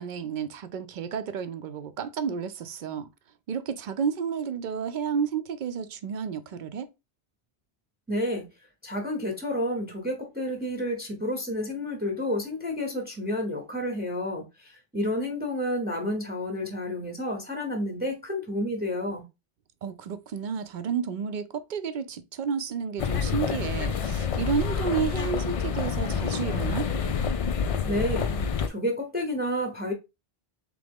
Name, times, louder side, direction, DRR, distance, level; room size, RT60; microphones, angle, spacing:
voice 1, 0.0-3.1 3.5-6.9 19.8-26.9, right 7 dB, 60° right, 0.6 m, -31 dB
voice 2, 8.1-8.5 8.8-19.2 27.9-28.3 28.7-29.9, left 1 dB, 10° right, 0.7 m, -30 dB
sound 1, 23.0-28.7, left 6 dB, 60° left, 0.3 m, -28 dB
3.7 x 3.4 x 3.5 m
omnidirectional pair, 1.1 m